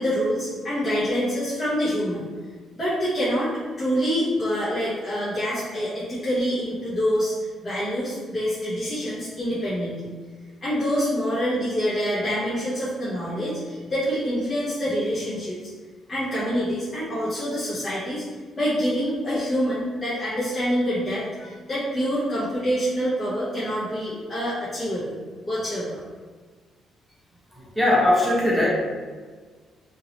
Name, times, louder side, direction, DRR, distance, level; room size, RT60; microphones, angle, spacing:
voice 1, 0.0-2.3 2.7-7.3 7.6-10.1 10.6-15.6 16.1-18.3 18.5-25.1 25.5-26.0, equal, 25° left, -12 dB, 1.0 m, -26 dB
voice 2, 27.5-28.7, left 1 dB, ahead, -6 dB, 0.8 m, -20 dB
2.9 x 2.8 x 2.8 m, 1.5 s
cardioid pair, 155°, 0 cm